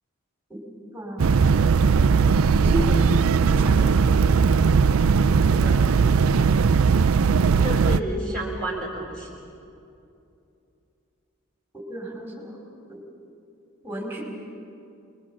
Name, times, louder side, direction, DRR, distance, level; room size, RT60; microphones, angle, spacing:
voice 1, 0.9-1.8 2.6-3.1 3.5-4.1 8.0-8.4 11.7-12.6 12.9-13.0 13.8-14.2, right 1 dB, 10° right, -1 dB, 4.6 m, -34 dB
sound 1, 1.2-8.0, right 5 dB, 80° right, 0.5 m, -19 dB
voice 2, 5.3-5.8 7.6-9.3, equal, 5° left, -4 dB, 3.8 m, -31 dB
26.5 x 21.5 x 7.4 m, 2.6 s
head